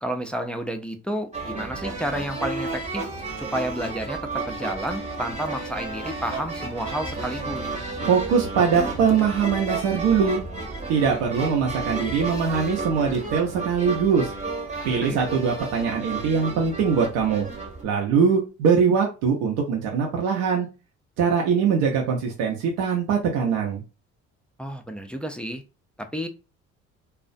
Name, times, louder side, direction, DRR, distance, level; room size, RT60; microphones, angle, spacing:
voice 1, 0.0-3.1 3.4-7.8 15.0-15.3 24.6-25.6 26.0-26.3, right 1 dB, 5° left, 4 dB, 0.3 m, -31 dB
sound 1, 1.3-17.8, right 3 dB, 20° right, 0.8 m, -32 dB
voice 2, 8.0-10.4 10.9-14.3 14.8-17.5 17.8-20.7 21.2-23.8, right 6 dB, 80° right, 0 dB, 0.6 m, -22 dB
2.4 x 2.1 x 2.5 m, 0.30 s
supercardioid pair, 70°, 32 cm